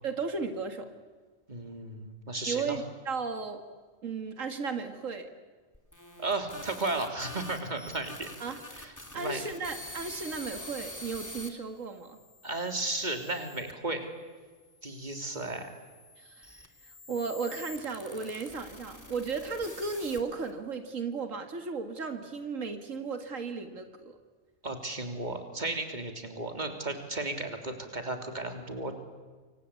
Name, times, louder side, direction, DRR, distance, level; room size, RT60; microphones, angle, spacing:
voice 1, 0.0-0.9 2.5-3.6 4.0-5.3 8.4-8.6 9.1-12.2 16.2-24.2, right 4 dB, 90° right, 7 dB, 2.3 m, -35 dB
voice 2, 1.5-2.8 6.2-8.3 8.7-9.4 12.4-14.1 14.8-15.7 24.6-28.9, right 2 dB, 35° right, 5 dB, 3.4 m, -34 dB
sound 1, 5.7-11.5 12.2-13.7 14.5-20.5, left 1 dB, 15° left, 2.9 m, -47 dB
28.0 x 25.0 x 8.4 m, 1.4 s
omnidirectional pair, 1.3 m